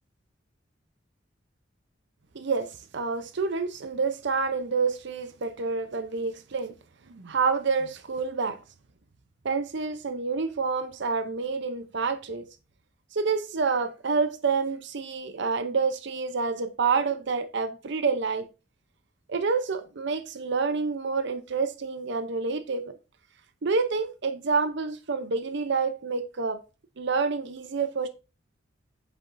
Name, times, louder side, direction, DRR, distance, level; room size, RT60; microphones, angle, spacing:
voice 1, 2.3-6.7 7.1-8.6 9.4-12.5 13.1-18.5 19.3-22.9 23.6-26.6 27.0-28.1, right 4 dB, 65° right, 0.7 m, -28 dB
8.6 x 6.8 x 2.6 m
head